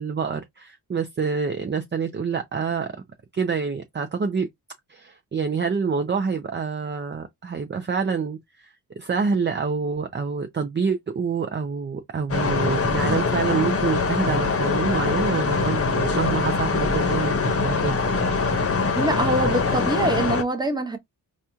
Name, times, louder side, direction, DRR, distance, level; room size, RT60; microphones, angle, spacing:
voice 1, 0.0-2.9 3.3-4.5 4.9-17.9, right 5 dB, 30° right, 0.6 m, -27 dB
sound 1, 12.3-20.4, left 4 dB, 35° left, 0.9 m, -23 dB
voice 2, 18.9-21.0, right 1 dB, 10° right, 1.0 m, -24 dB
4.1 x 2.4 x 2.8 m
cardioid pair, 70°, 39 cm